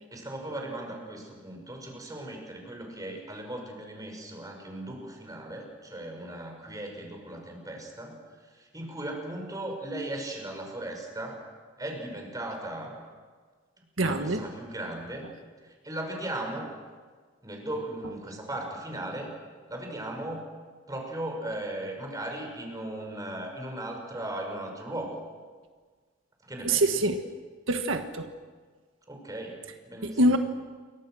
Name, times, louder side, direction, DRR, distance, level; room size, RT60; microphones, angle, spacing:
voice 1, 0.1-11.4 11.8-13.0 13.8-15.3 15.6-16.7 17.4-19.3 19.7-20.5 20.9-25.2 26.4-27.0 29.1-30.4, right 1 dB, 20° right, 2 dB, 5.9 m, -37 dB
voice 2, 14.0-14.4 26.6-27.2 27.7-28.3 30.0-30.4, right 1 dB, 90° right, 6 dB, 1.6 m, -24 dB
29.0 x 24.0 x 6.4 m, 1.5 s
head